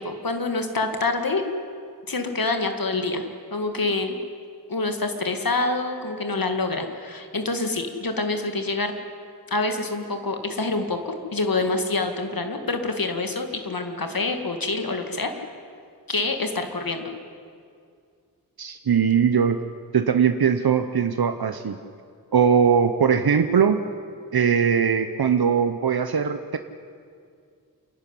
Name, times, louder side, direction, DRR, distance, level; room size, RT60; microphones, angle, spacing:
voice 1, 0.0-1.4 2.1-3.2 3.5-4.2 4.7-8.9 9.5-15.3 16.1-17.1, left 3 dB, 70° left, 6 dB, 2.1 m, -26 dB
voice 2, 18.6-19.6 19.9-21.8 22.3-23.8 24.3-26.6, right 7 dB, 80° right, 9 dB, 0.9 m, -20 dB
28.0 x 11.5 x 10.0 m, 2.3 s
wide cardioid pair, 70°, 36 cm